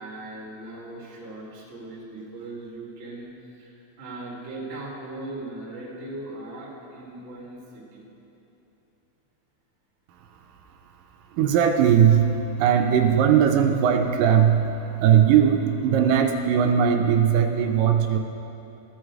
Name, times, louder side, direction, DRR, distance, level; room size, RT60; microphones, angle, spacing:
voice 1, 0.0-3.3 3.6-8.1, right 2 dB, 40° right, -4 dB, 1.0 m, -39 dB
voice 2, 11.3-14.7 15.0-18.2, right 8 dB, 80° right, 4 dB, 2.2 m, -19 dB
13.5 x 6.4 x 4.7 m, 2.9 s
omnidirectional pair, 4.0 m